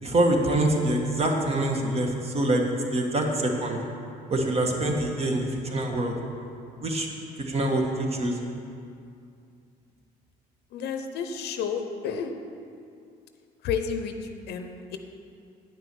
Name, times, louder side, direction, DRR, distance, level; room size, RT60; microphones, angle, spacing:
voice 1, 0.0-2.6 2.9-3.8 4.3-5.4 5.7-6.1 6.8-7.1 7.5-8.3, right 1 dB, 35° right, 2 dB, 1.5 m, -25 dB
voice 2, 10.7-12.3 13.6-14.1 14.5-15.0, left 6 dB, 75° left, 7 dB, 0.8 m, -31 dB
9.4 x 6.1 x 6.9 m, 2.5 s
cardioid pair, 110°, 17 cm